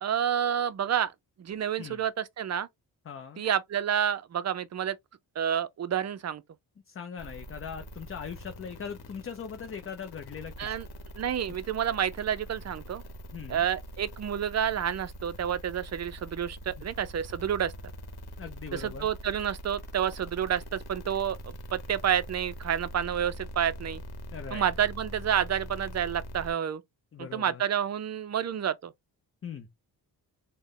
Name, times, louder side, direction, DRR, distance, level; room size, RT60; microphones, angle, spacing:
voice 1, 0.0-1.1 1.4-2.7 3.4-5.0 5.4-6.4 10.6-10.9 11.2-13.0 13.5-17.7 18.7-24.0 24.5-26.8 27.2-28.9, right 9 dB, 40° right, 0.5 m, -29 dB
voice 2, 3.0-3.4 6.9-10.7 13.3-13.6 16.8-16.9 18.4-19.1 24.3-24.7 27.1-27.6 29.4-29.7, left 7 dB, 35° left, 0.5 m, -40 dB
sound 1, 7.2-26.5, equal, 70° left, 1.0 m, -43 dB
3.2 x 2.2 x 3.6 m
cardioid pair, 90°, 40 cm